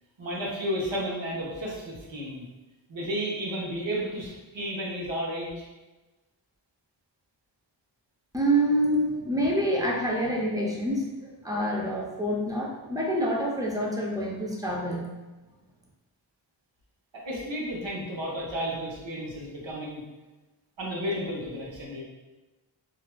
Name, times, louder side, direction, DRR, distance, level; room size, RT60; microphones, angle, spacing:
voice 1, 0.2-2.4 2.9-5.6 8.9-9.0 17.1-20.0 20.8-22.0, equal, 70° right, -4 dB, 0.9 m, -32 dB
voice 2, 8.3-11.1 11.4-15.1, right 1 dB, 10° right, -3 dB, 0.5 m, -27 dB
3.2 x 2.5 x 2.2 m, 1.1 s
wide cardioid pair, 80°, 47 cm